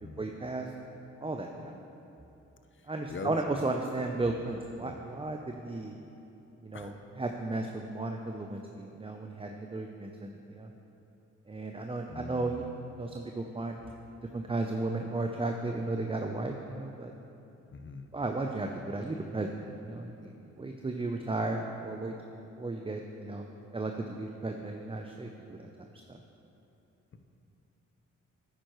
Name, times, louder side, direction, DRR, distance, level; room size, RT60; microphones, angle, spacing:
voice 1, 0.2-0.7 1.2-1.8 2.9-6.0 6.6-10.7 11.5-12.6 13.0-13.8 14.3-17.1 18.1-22.1 22.6-23.5 23.7-26.2, right 2 dB, 15° right, 3 dB, 0.6 m, -35 dB
voice 2, 2.8-3.4 4.8-5.0 6.7-7.0 12.1-12.6 17.7-18.1, left 4 dB, 40° left, 7 dB, 0.8 m, -43 dB
10.0 x 8.8 x 3.1 m, 2.9 s
supercardioid pair, 50°, 32 cm